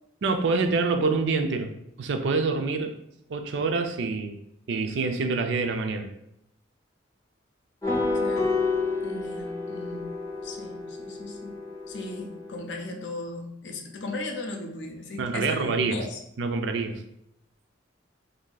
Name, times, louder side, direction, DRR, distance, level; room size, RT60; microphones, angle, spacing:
voice 1, 0.2-1.7 2.0-3.0 3.3-4.4 4.7-6.1 15.2-16.0 16.4-17.0, right 4 dB, 65° right, 6 dB, 0.4 m, -26 dB
sound 1, 7.8-12.5, left 3 dB, 15° left, 0.5 m, -30 dB
voice 2, 8.1-8.6 9.0-10.1 10.4-11.6 11.9-16.2, left 2 dB, 70° left, 4 dB, 0.6 m, -37 dB
2.6 x 2.6 x 3.8 m, 0.78 s
head